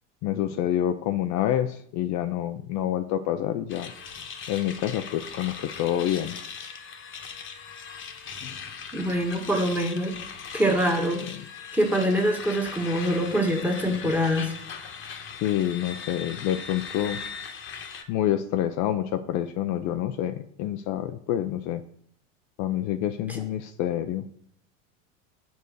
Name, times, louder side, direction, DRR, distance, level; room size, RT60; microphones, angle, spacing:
voice 1, 0.2-3.9 4.5-6.4 8.4-8.6 15.4-17.2 18.1-21.8 22.6-24.3, left 11 dB, 50° left, 8 dB, 0.6 m, -27 dB
sound 1, 3.7-18.0, left 6 dB, 30° left, 1.3 m, -39 dB
voice 2, 8.9-10.1 10.5-11.2 11.7-14.5, equal, 5° right, 3 dB, 1.6 m, -24 dB
7.0 x 4.5 x 6.5 m, 0.64 s
hypercardioid pair, 100°, 38 cm